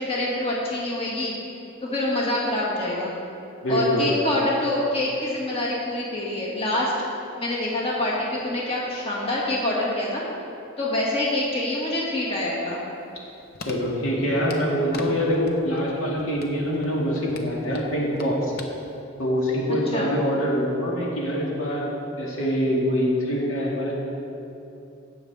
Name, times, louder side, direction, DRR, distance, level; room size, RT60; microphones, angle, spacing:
voice 1, 0.0-1.3 1.8-3.1 3.7-6.9 7.4-10.2 10.8-12.9 19.9-20.1, left 1 dB, 30° left, -5 dB, 1.9 m, -26 dB
voice 2, 3.6-4.1 13.6-18.5 19.2-21.9 22.2-24.0, equal, 90° left, -3 dB, 2.0 m, -24 dB
sound 1, 12.9-15.1 15.3-15.9 16.2-18.7 19.0-19.1, left 3 dB, 50° left, 0.8 m, -40 dB
16.5 x 6.9 x 3.4 m, 2.9 s
head